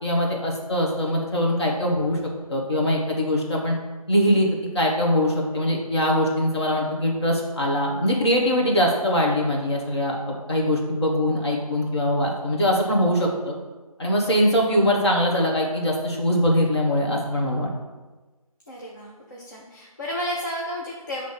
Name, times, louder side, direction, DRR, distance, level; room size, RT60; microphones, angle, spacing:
voice 1, 0.0-2.2 2.5-3.7 4.1-4.5 4.7-13.6 14.0-17.7, equal, 45° left, -1 dB, 1.3 m, -22 dB
voice 2, 18.7-21.3, equal, 30° left, -4 dB, 0.6 m, -32 dB
6.1 x 3.1 x 5.6 m, 1.2 s
figure-of-eight pair, 170°, 19 cm